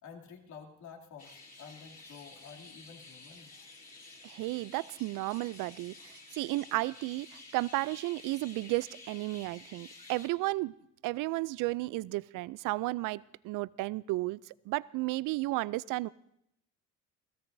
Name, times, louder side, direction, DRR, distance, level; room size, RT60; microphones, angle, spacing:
voice 1, 0.0-3.5, left 6 dB, 60° left, 0 dB, 2.8 m, -50 dB
sound 1, 1.2-10.3, left 3 dB, 25° left, 3.0 m, -52 dB
voice 2, 4.2-10.7 11.0-14.4 14.7-16.1, right 20 dB, 65° right, 20 dB, 0.5 m, -33 dB
28.0 x 16.5 x 2.7 m, 0.78 s
cardioid pair, 115°, 34 cm